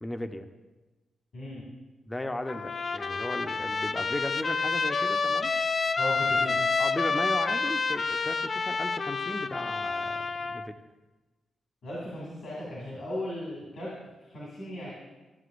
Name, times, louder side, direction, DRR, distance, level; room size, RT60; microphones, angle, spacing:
voice 1, 0.0-0.5 2.1-5.5 6.8-10.7, left 1 dB, 20° left, 7 dB, 0.7 m, -36 dB
voice 2, 1.3-1.6 6.0-6.6 11.8-13.9 14.3-14.9, left 1 dB, 75° left, -6 dB, 2.3 m, -36 dB
Trumpet, 2.5-10.7, left 4 dB, 50° left, 0.4 m, -29 dB
13.0 x 7.5 x 2.5 m, 1.2 s
supercardioid pair, 45°, 0 cm